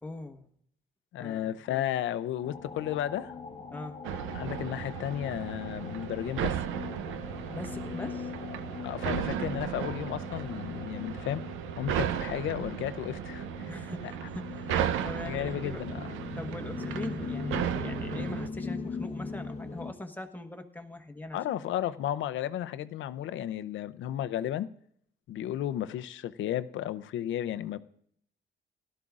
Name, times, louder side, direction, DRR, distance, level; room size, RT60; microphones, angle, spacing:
voice 1, 0.0-0.5 1.2-1.8 3.7-4.0 7.5-8.3 13.7-15.8 16.3-21.4, left 2 dB, 10° left, 1.2 m, -41 dB
voice 2, 1.1-3.3 4.3-6.6 8.8-11.5 11.8-13.7 14.0-14.1 15.3-16.1 21.3-24.7 25.3-27.8, left 11 dB, 75° left, 0.6 m, -33 dB
sound 1, 2.4-19.9, left 4 dB, 30° left, 1.1 m, -41 dB
sound 2, 4.0-18.5, right 10 dB, 85° right, 0.6 m, -35 dB
17.5 x 12.5 x 2.5 m
cardioid pair, 90°, 20 cm